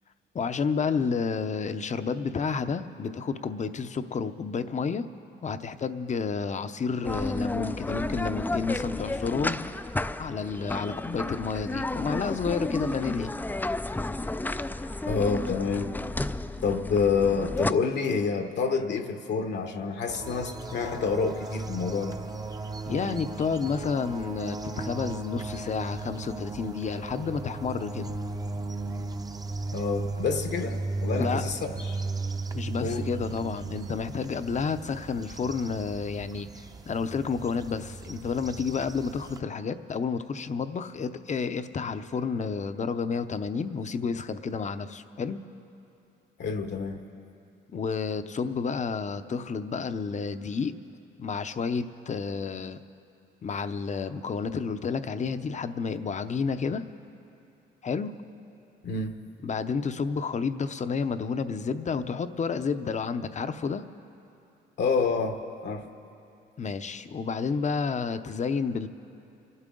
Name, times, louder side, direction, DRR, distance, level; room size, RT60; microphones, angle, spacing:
voice 1, 0.3-5.1 5.4-9.6 10.2-13.3 22.9-28.2 31.1-31.5 32.5-45.4 47.7-50.8 51.2-52.8 53.4-56.8 57.8-58.1 59.4-63.8 66.6-68.9, left 5 dB, 35° left, 10 dB, 0.7 m, -30 dB
sound 1, 7.0-17.7, left 2 dB, 10° left, 0.4 m, -32 dB
voice 2, 15.1-15.9 16.6-22.2 29.7-32.0 32.8-33.0 46.4-47.0 58.8-59.1 64.8-65.9, left 5 dB, 60° left, 5 dB, 1.1 m, -28 dB
sound 2, 20.1-39.4, right 3 dB, 20° right, 0.7 m, -36 dB
27.0 x 12.0 x 3.8 m, 2.7 s
cardioid pair, 90°, 20 cm